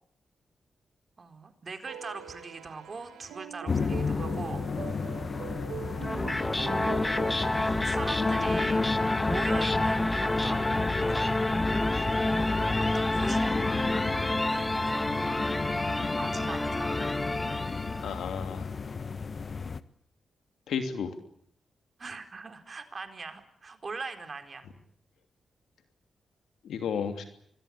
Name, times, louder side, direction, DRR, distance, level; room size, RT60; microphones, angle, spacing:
voice 1, 1.2-4.7 6.5-8.9 9.2-11.4 12.9-13.6 14.1-15.0 16.1-17.2 22.0-24.7, right 4 dB, 50° right, 7 dB, 4.2 m, -41 dB
sound 1, 1.8-7.6, right 8 dB, 85° right, 1.8 m, -42 dB
sound 2, 3.7-19.8, left 5 dB, 50° left, 1.3 m, -34 dB
sound 3, 6.0-18.2, left 2 dB, 20° left, 1.4 m, -28 dB
voice 2, 18.0-18.7 20.7-21.1 26.6-27.2, left 7 dB, 80° left, 7 dB, 2.9 m, -32 dB
27.0 x 21.5 x 8.7 m, 0.67 s
supercardioid pair, 45°, 0 cm